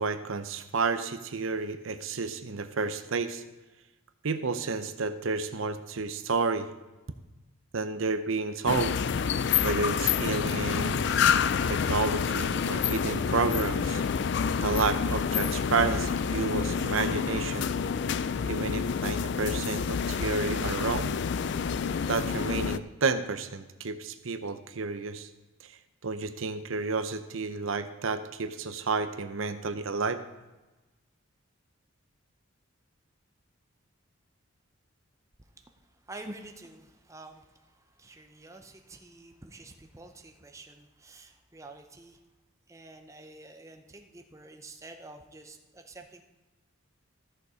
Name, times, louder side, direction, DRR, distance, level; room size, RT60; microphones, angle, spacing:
voice 1, 0.0-3.4 4.2-6.7 7.7-8.9 9.6-11.3 11.7-14.0 14.6-17.7 18.4-21.1 22.1-25.3 26.0-30.2, right 4 dB, 70° right, 10 dB, 0.7 m, -31 dB
sound 1, 8.7-22.8, left 6 dB, 55° left, 0.3 m, -28 dB
voice 2, 36.1-37.5 38.0-42.2 42.7-46.2, right 2 dB, 15° right, 5 dB, 0.7 m, -48 dB
14.0 x 6.8 x 4.9 m, 1.1 s
head